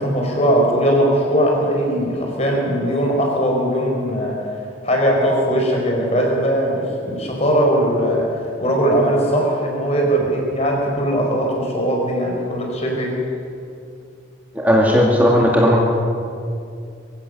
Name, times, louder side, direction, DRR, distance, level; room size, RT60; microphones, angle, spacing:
voice 1, 0.0-4.4 4.8-8.3 8.6-13.1, equal, 35° left, 0 dB, 4.6 m, -19 dB
voice 2, 14.6-15.8, equal, 10° right, -2 dB, 1.9 m, -15 dB
23.5 x 16.0 x 6.7 m, 2.4 s
head